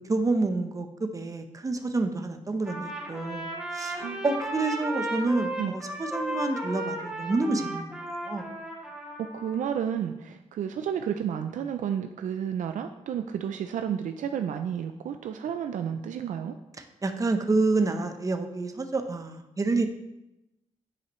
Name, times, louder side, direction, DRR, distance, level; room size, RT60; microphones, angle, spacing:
voice 1, 0.1-3.5 3.7-7.9 8.2-8.5 17.0-19.9, right 3 dB, 25° right, 7 dB, 0.8 m, -28 dB
Trumpet, 2.6-9.6, right 1 dB, 5° right, 2.1 m, -35 dB
voice 2, 9.2-16.6, right 8 dB, 85° right, 7 dB, 0.4 m, -31 dB
10.0 x 5.5 x 3.1 m, 0.90 s
wide cardioid pair, 110°, 13 cm